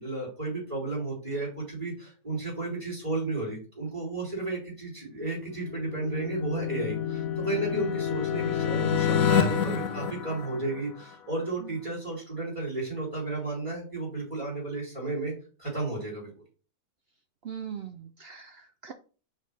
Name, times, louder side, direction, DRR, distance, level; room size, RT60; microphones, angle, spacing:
voice 1, 0.0-15.3 15.6-16.3, right 2 dB, 20° right, -8 dB, 2.8 m, -33 dB
sound 1, 5.3-11.1, left 8 dB, 70° left, 1.0 m, -28 dB
voice 2, 17.4-18.9, right 8 dB, 70° right, 7 dB, 0.5 m, -40 dB
5.2 x 4.0 x 5.4 m, 0.37 s
omnidirectional pair, 1.7 m